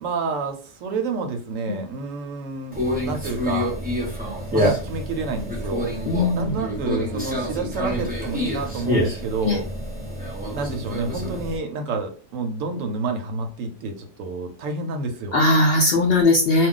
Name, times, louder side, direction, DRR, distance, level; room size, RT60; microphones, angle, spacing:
voice 1, 0.0-3.7 4.5-5.9 6.3-9.6 10.5-15.4, right 4 dB, 70° right, 6 dB, 0.9 m, -29 dB
Conversation, 2.7-11.6, equal, 10° right, 0.5 m, -27 dB
voice 2, 6.1-6.5 9.4-9.6 15.3-16.7, left 2 dB, 65° left, 0 dB, 0.6 m, -19 dB
2.3 x 2.3 x 3.7 m, 0.38 s
omnidirectional pair, 1.5 m